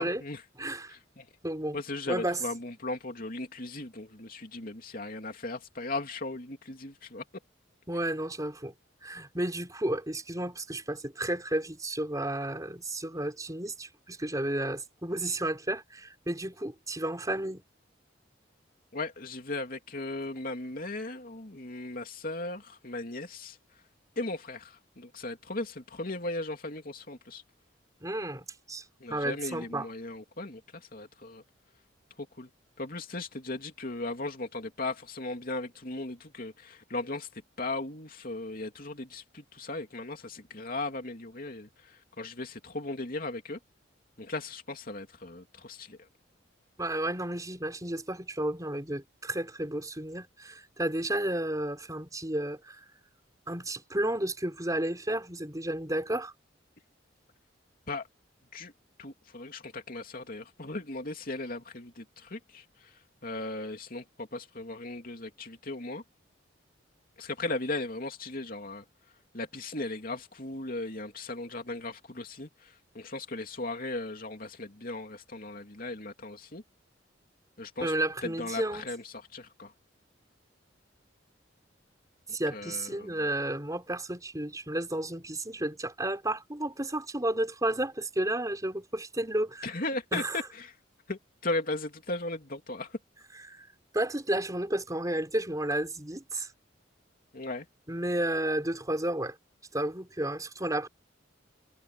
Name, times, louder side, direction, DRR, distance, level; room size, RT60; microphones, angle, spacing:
voice 1, 0.0-0.4 0.9-1.3 1.7-7.2 18.9-23.6 24.2-27.4 29.0-31.4 32.4-32.5 32.8-43.6 44.2-46.1 57.9-58.1 58.5-58.7 59.0-66.0 67.2-68.8 69.3-76.6 77.6-77.9 78.2-79.7 82.5-83.2 89.6-90.7 91.1-93.0 97.3-97.7, left 2 dB, 50° left, 3.0 m, -37 dB
voice 2, 0.6-1.0 1.4-1.8 2.1-2.4 7.9-8.7 9.0-17.6 28.0-28.8 29.1-29.9 46.8-52.8 53.5-56.3 77.8-78.8 82.3-89.7 90.1-90.4 93.5-93.7 93.9-96.5 97.9-99.4 99.7-100.9, right 1 dB, 20° right, 4.6 m, -32 dB
head